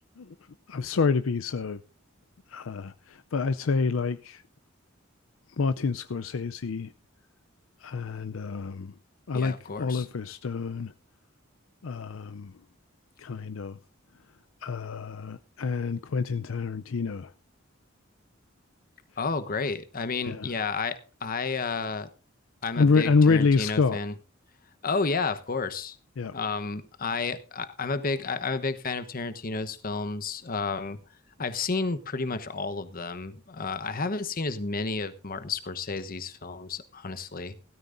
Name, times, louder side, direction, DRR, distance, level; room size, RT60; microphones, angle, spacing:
voice 1, 0.7-1.8 2.5-4.4 5.6-6.9 7.8-8.9 9.3-10.9 11.8-12.5 13.2-13.8 14.6-17.3 20.3-20.5 22.8-24.0 26.2-26.3, left 4 dB, 75° left, 0.5 m, -27 dB
voice 2, 9.3-10.1 19.2-22.1 22.6-24.1 24.8-26.0 26.3-31.0 31.4-37.5, left 4 dB, 45° left, 1.0 m, -31 dB
16.5 x 13.0 x 2.6 m
head